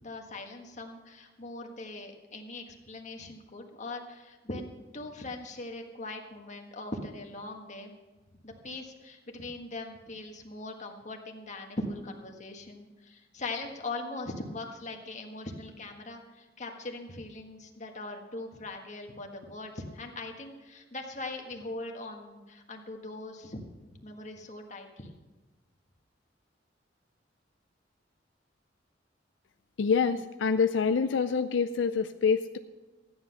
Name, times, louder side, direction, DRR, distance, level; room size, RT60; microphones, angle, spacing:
voice 1, 0.0-8.0 8.4-25.1, left 2 dB, 40° left, 2 dB, 1.6 m, -41 dB
voice 2, 29.8-32.6, left 5 dB, 80° left, 9 dB, 0.5 m, -26 dB
14.0 x 9.9 x 5.7 m, 1.2 s
head